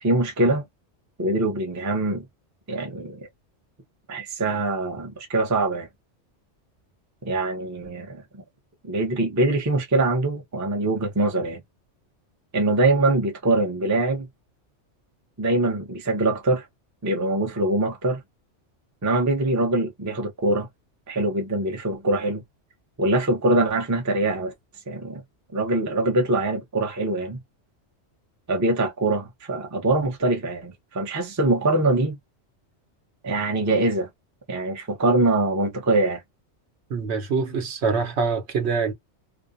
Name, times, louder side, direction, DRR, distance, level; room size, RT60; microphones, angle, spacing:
voice 1, 0.0-0.6 1.2-2.2 2.7-3.3 4.1-5.9 7.2-8.4 8.8-11.6 12.5-14.3 15.4-16.7 17.0-18.2 19.0-20.7 21.1-22.4 23.0-24.5 24.9-25.2 25.5-27.4 28.5-32.2 33.2-34.1 34.5-36.2, right 2 dB, 20° right, 0.4 m, -23 dB
voice 2, 36.9-38.9, right 5 dB, 70° right, 1.0 m, -25 dB
2.4 x 2.0 x 2.5 m
omnidirectional pair, 1.2 m